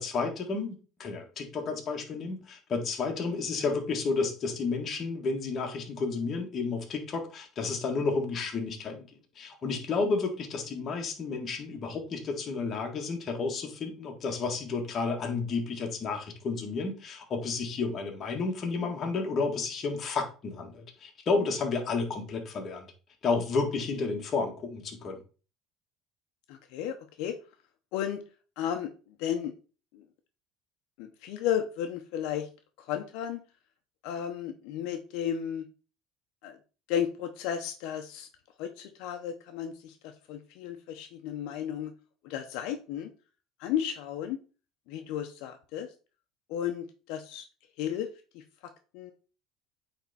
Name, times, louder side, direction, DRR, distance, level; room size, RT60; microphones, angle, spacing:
voice 1, 0.0-9.1 9.3-22.9 23.2-25.2, left 4 dB, 35° left, 1.7 m, -31 dB
voice 2, 26.5-27.4 27.9-28.2 28.6-28.9 29.2-29.5 29.9-30.0 31.0-32.5 32.8-33.4 34.0-35.6 36.4-36.6 36.9-38.3 38.6-40.0 40.3-41.9 42.2-43.1 43.6-44.4 44.9-45.9 46.5-47.4 47.8-48.1 48.3-48.4 48.9-49.1, left 9 dB, 75° left, 0.8 m, -33 dB
8.7 x 3.5 x 4.2 m
cardioid pair, 140°, 0 cm